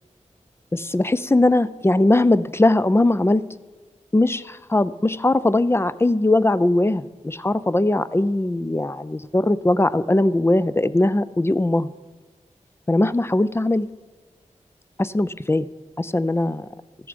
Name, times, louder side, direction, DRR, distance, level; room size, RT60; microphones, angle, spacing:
voice 1, 0.7-3.4 4.1-11.9 12.9-13.9 15.0-15.7 16.0-16.7, left 2 dB, 20° left, 15 dB, 0.4 m, -20 dB
14.0 x 6.9 x 5.2 m, 1.3 s
cardioid pair, 45°, 13 cm